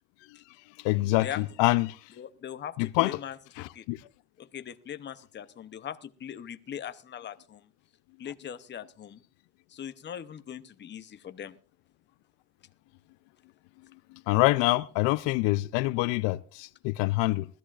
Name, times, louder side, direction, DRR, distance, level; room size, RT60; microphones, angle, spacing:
voice 1, 0.8-2.0 2.8-3.2 3.9-4.0 14.3-17.5, left 20 dB, 75° left, 0.6 m, -25 dB
voice 2, 2.2-3.9 4.4-7.7 8.2-9.2 9.7-11.6, left 9 dB, 25° left, 0.7 m, -40 dB
20.0 x 14.0 x 2.4 m
cardioid pair, 135°, 44 cm